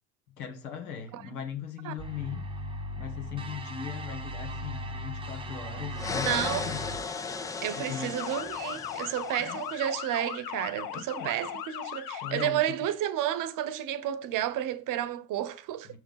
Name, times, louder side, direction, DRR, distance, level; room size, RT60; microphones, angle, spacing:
voice 1, 0.4-2.5 3.0-6.8 7.7-8.1 9.4-9.6 10.9-11.3 12.2-12.6 15.9-16.0, left 8 dB, 90° left, 1.9 m, -39 dB
sound 1, 2.0-7.0, equal, 10° right, 0.8 m, -38 dB
sound 2, 5.9-9.9, left 4 dB, 10° left, 0.3 m, -36 dB
voice 2, 6.3-6.6 7.6-15.9, right 12 dB, 45° right, 0.9 m, -31 dB
Motor vehicle (road) / Siren, 8.2-12.5, left 9 dB, 50° left, 0.9 m, -38 dB
5.8 x 4.9 x 5.6 m
supercardioid pair, 105°, 44 cm